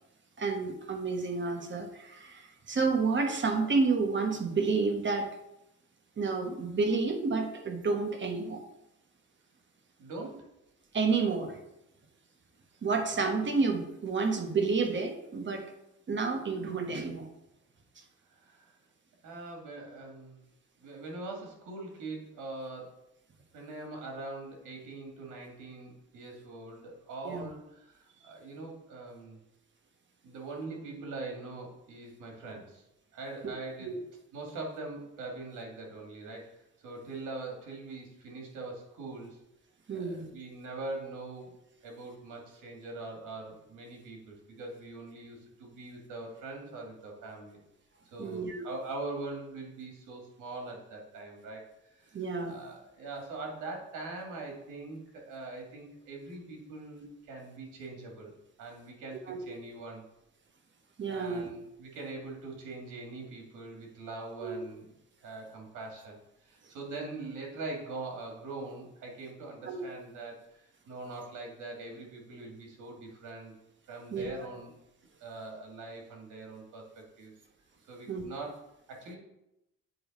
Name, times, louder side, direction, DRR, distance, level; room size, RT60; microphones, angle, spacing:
voice 1, 0.4-5.3 6.2-8.6 10.9-11.6 12.8-15.6 16.1-17.3 27.2-27.4 33.8-34.0 39.9-40.3 48.2-48.7 52.1-52.6 59.3-59.4 61.0-61.5 64.4-64.6 69.7-69.8 74.1-74.3 78.1-78.2, right 4 dB, 40° right, 5 dB, 1.2 m, -30 dB
voice 2, 10.0-10.5 18.3-18.7 19.2-20.4 20.8-23.0 23.5-29.4 30.2-32.8 33.1-34.0 34.3-39.4 39.9-41.5 41.8-47.6 48.1-51.7 51.9-60.1 61.1-64.9 65.2-73.5 73.9-74.7 75.2-77.3 77.9-78.6 78.9-79.2, right 2 dB, 85° right, 0 dB, 2.1 m, -42 dB
7.8 x 3.3 x 5.2 m, 0.86 s
cardioid pair, 90°, 30 cm